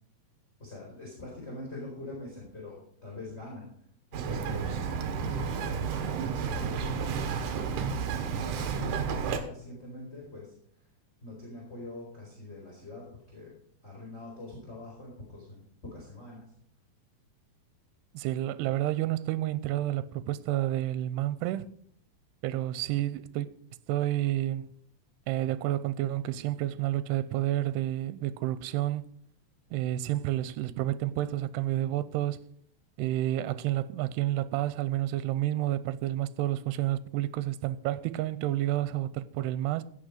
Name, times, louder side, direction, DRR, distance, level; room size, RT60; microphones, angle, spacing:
voice 1, 0.6-3.7 4.1-7.8 8.3-10.5 11.2-13.5 13.8-16.5, left 2 dB, 15° left, 3.8 m, -44 dB
Bird vocalization bird call bird song, 4.1-9.4, right 6 dB, 70° right, 2.1 m, -31 dB
voice 2, 18.1-21.7 22.4-23.5 23.9-24.7 25.3-29.1 29.7-32.4 33.0-39.8, right 14 dB, 85° right, 2.6 m, -30 dB
16.5 x 6.1 x 5.0 m
omnidirectional pair, 4.7 m